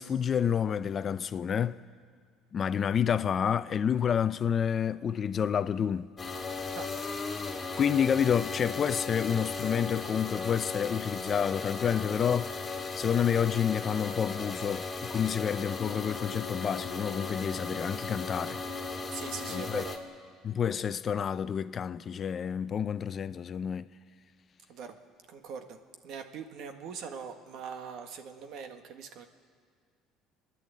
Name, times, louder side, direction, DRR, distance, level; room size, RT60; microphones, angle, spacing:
voice 1, 0.0-1.8 2.5-6.1 7.8-12.7 13.0-18.6 19.5-19.8 20.4-23.9, left 8 dB, 35° left, 0.4 m, -29 dB
sound 1, 6.2-20.0, left 4 dB, 20° left, 2.2 m, -36 dB
voice 2, 19.1-19.9 24.7-25.0 25.3-25.8 26.0-29.3, right 6 dB, 60° right, 1.7 m, -42 dB
28.5 x 11.0 x 8.4 m
cardioid pair, 125°, 0 cm